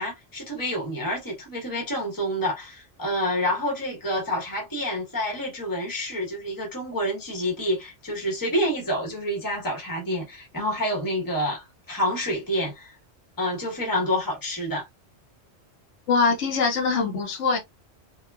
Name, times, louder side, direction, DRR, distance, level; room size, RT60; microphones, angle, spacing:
voice 1, 0.0-12.9 13.4-14.9, equal, 20° left, 0.9 m, -28 dB
voice 2, 16.1-17.6, left 4 dB, 80° left, 1.1 m, -23 dB
3.1 x 2.3 x 2.2 m
omnidirectional pair, 1.2 m